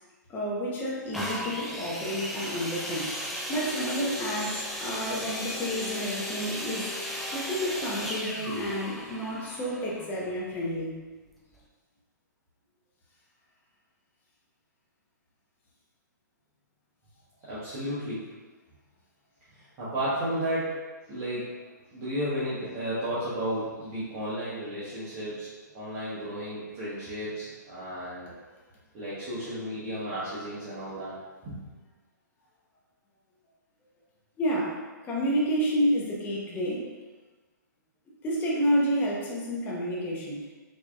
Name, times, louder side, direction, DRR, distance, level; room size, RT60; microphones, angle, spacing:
voice 1, 0.3-3.1 3.5-6.9 7.3-11.0 27.9-28.0 34.4-36.9 38.2-40.4, equal, 20° left, -4 dB, 0.8 m, -30 dB
sound 1, 1.1-10.8 11.5-11.6, equal, ahead, 0.3 m, -36 dB
voice 2, 17.5-18.2 19.8-20.7 21.1-21.5 21.9-25.5 25.7-28.3 28.9-31.1 31.4-31.5, equal, 30° right, -11 dB, 1.0 m, -33 dB
4.5 x 2.8 x 2.3 m, 1.3 s
hypercardioid pair, 135°, 10 cm